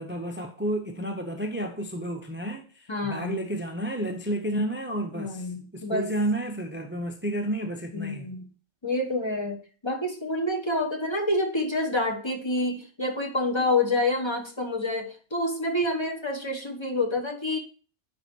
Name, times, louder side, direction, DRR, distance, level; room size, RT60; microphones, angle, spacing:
voice 1, 0.0-5.5 5.7-8.3, right 1 dB, 10° right, 0.6 m, -31 dB
voice 2, 2.9-3.4 5.1-6.1 7.9-8.4 8.8-9.6 9.8-17.6, left 2 dB, 25° left, 1.1 m, -28 dB
10.5 x 4.2 x 4.4 m
omnidirectional pair, 1.2 m